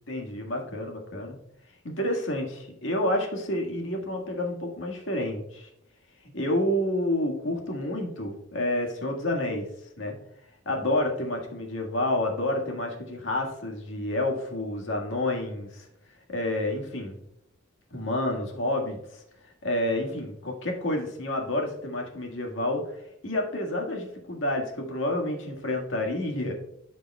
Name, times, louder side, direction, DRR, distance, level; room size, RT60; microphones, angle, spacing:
voice 1, 0.1-1.3 1.8-5.7 6.2-9.7 10.0-10.1 10.6-15.9 16.3-17.2 17.9-26.5, left 1 dB, 75° left, 1 dB, 1.7 m, -29 dB
13.5 x 5.2 x 2.3 m, 0.79 s
head